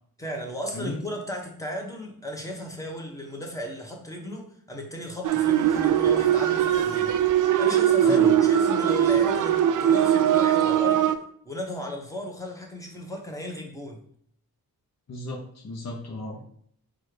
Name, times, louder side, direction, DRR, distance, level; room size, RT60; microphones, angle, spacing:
voice 1, 0.2-7.2 7.6-11.0 11.4-14.0, equal, 10° left, 0 dB, 1.2 m, -35 dB
sound 1, 5.2-11.2, right 10 dB, 55° right, 0.4 m, -21 dB
voice 2, 8.0-8.3 15.1-16.5, left 2 dB, 45° left, -2 dB, 0.8 m, -35 dB
4.2 x 2.5 x 4.8 m, 0.65 s
cardioid pair, 60°, 37 cm